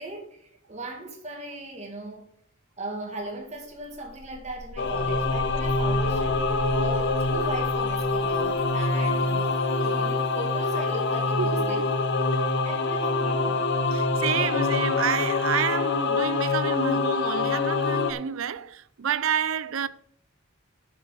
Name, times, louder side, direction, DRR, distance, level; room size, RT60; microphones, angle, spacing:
voice 1, 0.0-2.3 2.8-11.8 12.4-13.6, right 2 dB, 35° right, 2.2 m, -38 dB
sound 1, 3.2-3.3 3.6-10.4, left 1 dB, 75° left, 1.6 m, -39 dB
Singing / Musical instrument, 4.8-18.1, left 3 dB, 55° left, 0.8 m, -25 dB
voice 2, 11.4-11.8 12.3-12.5 13.9-19.9, right 8 dB, 75° right, 0.5 m, -29 dB
6.8 x 6.6 x 7.3 m
head